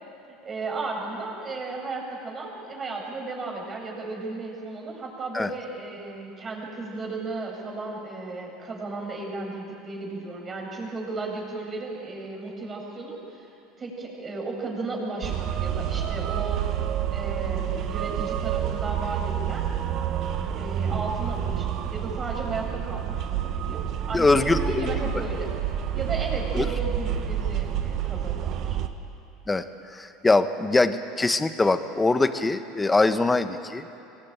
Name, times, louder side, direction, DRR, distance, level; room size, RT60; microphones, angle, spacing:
voice 1, 0.3-13.5 13.8-16.6 17.1-19.7 20.5-25.5 25.9-28.8, right 3 dB, 30° right, 0 dB, 7.9 m, -34 dB
sound 1, 15.2-28.9, right 9 dB, 50° right, 1.4 m, -28 dB
voice 2, 24.1-24.9 26.5-26.7 29.5-29.6 30.0-33.8, left 3 dB, 15° left, 10 dB, 1.5 m, -22 dB
24.5 x 19.5 x 9.2 m, 2.8 s
hypercardioid pair, 75°, 0 cm